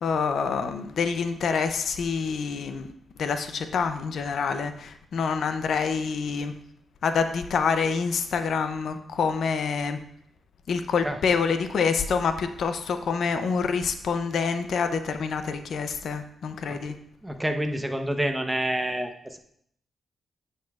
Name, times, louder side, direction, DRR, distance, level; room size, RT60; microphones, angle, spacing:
voice 1, 0.0-2.9 3.2-6.5 7.0-10.0 10.7-16.9, left 5 dB, 70° left, 9 dB, 0.6 m, -27 dB
voice 2, 17.2-19.4, right 1 dB, 10° right, 5 dB, 0.8 m, -28 dB
9.4 x 6.6 x 2.4 m, 0.69 s
cardioid pair, 75°, 0 cm